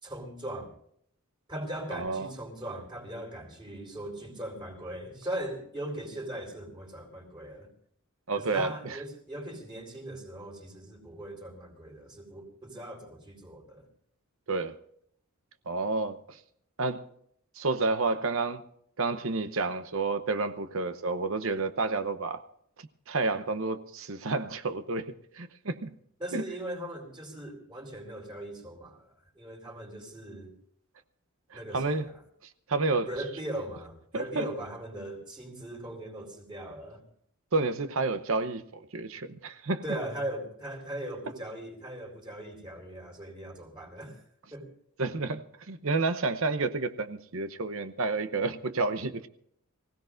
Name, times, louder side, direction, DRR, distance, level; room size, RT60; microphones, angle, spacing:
voice 1, 0.0-0.7 1.5-7.7 8.4-13.9 26.2-29.1 29.3-30.5 31.5-32.1 33.1-37.0 39.8-44.2 44.5-44.7, right 1 dB, 20° right, 4.3 m, -39 dB
voice 2, 1.9-2.3 8.3-9.0 14.5-14.8 15.7-16.4 16.8-17.0 17.6-18.6 19.0-22.4 23.1-25.9 26.3-26.4 31.5-32.1 32.7-33.1 34.1-34.5 37.5-39.8 45.0-49.3, right 3 dB, 65° right, 0.9 m, -30 dB
24.5 x 16.5 x 2.6 m
head